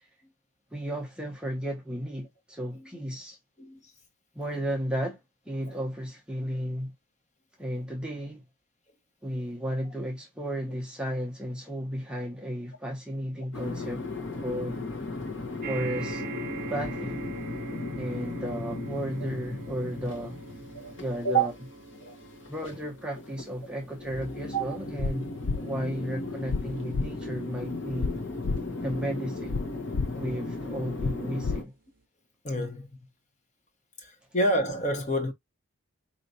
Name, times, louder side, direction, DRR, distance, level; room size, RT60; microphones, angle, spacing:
voice 1, 0.7-3.4 4.3-5.2 5.5-6.9 7.6-8.4 9.2-14.0 14.3-14.8 15.7-16.2 16.7-17.3 18.0-20.4 21.0-21.5 22.5-25.3 25.6-28.2 28.8-29.6 30.1-31.7, equal, 5° right, 0.7 m, -34 dB
sound 1, 13.5-31.6, left 2 dB, 60° left, 1.3 m, -37 dB
sound 2, 15.6-30.2 30.9-31.0 31.3-31.4, right 4 dB, 45° right, 0.6 m, -44 dB
sound 3, 25.0-25.1 25.4-25.6 26.5-26.6 26.9-27.1 28.0-28.1 28.4-28.6 29.5-29.6 29.9-30.1 31.0-31.1 31.4-31.6, left 4 dB, 90° left, 0.5 m, -28 dB
voice 2, 32.4-33.0 34.0-35.3, right 2 dB, 35° left, 1.1 m, -28 dB
4.5 x 2.9 x 2.6 m
head